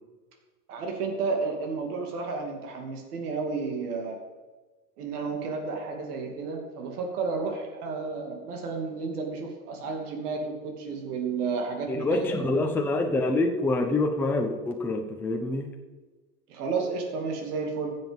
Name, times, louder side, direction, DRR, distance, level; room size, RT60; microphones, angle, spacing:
voice 1, 0.7-4.2 5.0-12.6 16.5-18.0, right 4 dB, 75° right, 2 dB, 2.8 m, -32 dB
voice 2, 11.9-15.7, left 2 dB, 5° left, 1 dB, 0.7 m, -26 dB
15.5 x 7.6 x 5.4 m, 1.3 s
supercardioid pair, 160°, 46 cm